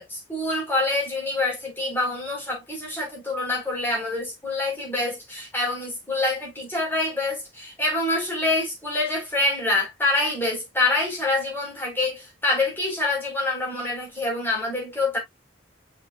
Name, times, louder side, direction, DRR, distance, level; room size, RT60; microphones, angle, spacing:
voice 1, 0.0-15.2, left 2 dB, 10° left, 4.3 m, -26 dB
7.0 x 6.0 x 2.3 m
head